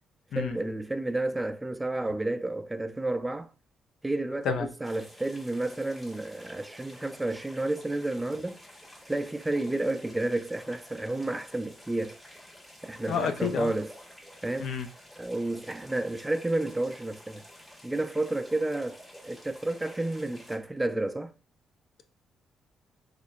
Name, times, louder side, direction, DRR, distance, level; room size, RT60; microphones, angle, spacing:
voice 1, 0.3-3.5 4.0-8.6 9.1-12.2 12.8-13.9 14.4-14.7 15.2-17.4 17.8-21.3, right 2 dB, 10° right, 0.3 m, -31 dB
sound 1, 4.8-20.6, equal, 10° left, 1.2 m, -51 dB
voice 2, 13.1-13.7 14.6-14.9, left 7 dB, 70° left, 0.4 m, -29 dB
3.8 x 3.1 x 2.3 m
cardioid pair, 90°, 0 cm